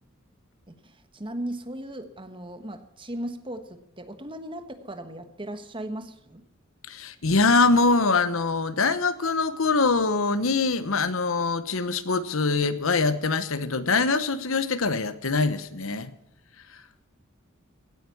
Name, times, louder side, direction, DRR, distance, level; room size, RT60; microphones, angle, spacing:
voice 1, 0.7-6.4, right 1 dB, 25° right, 9 dB, 1.3 m, -37 dB
voice 2, 6.9-16.1, left 3 dB, 80° left, 13 dB, 1.1 m, -23 dB
16.5 x 9.4 x 7.1 m, 0.82 s
head